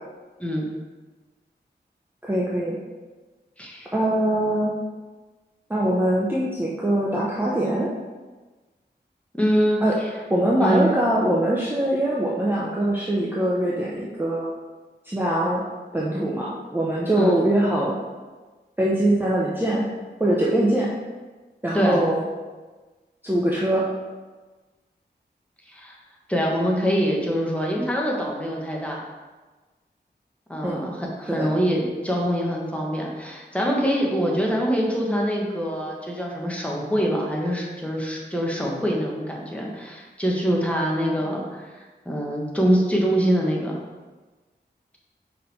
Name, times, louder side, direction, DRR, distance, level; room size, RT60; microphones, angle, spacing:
voice 1, 2.2-2.8 3.9-4.8 5.7-7.9 9.8-10.0 10.3-14.5 15.1-15.6 15.9-17.9 18.8-19.9 20.2-20.9 21.6-22.2 23.2-23.9 30.6-30.8 31.3-31.5, right 1 dB, 10° right, -5 dB, 0.8 m, -22 dB
voice 2, 3.6-3.9 9.3-10.1 10.6-10.9 17.1-17.4 21.7-22.0 25.7-26.0 26.3-29.0 30.5-43.8, equal, 5° left, -2 dB, 1.2 m, -24 dB
5.0 x 4.4 x 4.3 m, 1.3 s
wide cardioid pair, 70°, 19 cm